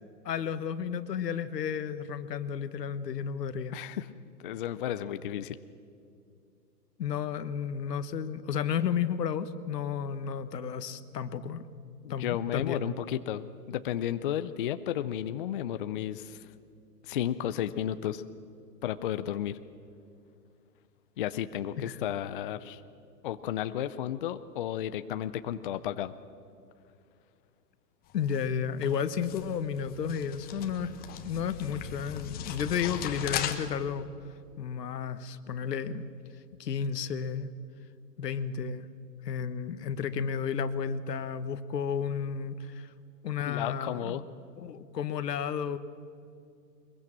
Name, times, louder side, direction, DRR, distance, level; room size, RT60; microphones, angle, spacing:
voice 1, 0.2-3.8 7.0-11.7 12.1-12.8 21.8-22.0 28.1-31.0 31.2-34.1 34.6-36.0 36.6-37.5 38.2-38.9 39.2-42.9 43.2-44.1 44.6-45.8, left 7 dB, 70° left, 13 dB, 1.4 m, -32 dB
voice 2, 3.7-4.1 4.4-5.6 12.0-16.5 17.0-18.2 18.8-19.6 21.2-22.8 23.2-26.1 43.4-44.2, left 11 dB, 35° left, 11 dB, 0.5 m, -33 dB
sound 1, 28.1-33.6, left 9 dB, 20° left, 1.0 m, -38 dB
22.0 x 22.0 x 7.4 m, 2.4 s
hypercardioid pair, 135°, 50 cm